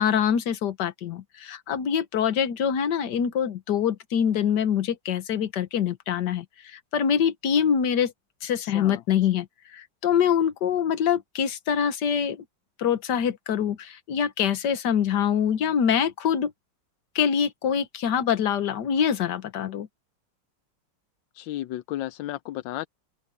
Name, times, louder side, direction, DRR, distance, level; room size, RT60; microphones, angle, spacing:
voice 1, 0.0-8.1 8.4-9.5 9.7-12.4 12.8-16.5 17.1-19.9, left 8 dB, 70° left, 1.7 m, -24 dB
voice 2, 8.6-9.0 21.3-22.9, left 14 dB, 90° left, 1.3 m, -33 dB
open air
omnidirectional pair, 2.0 m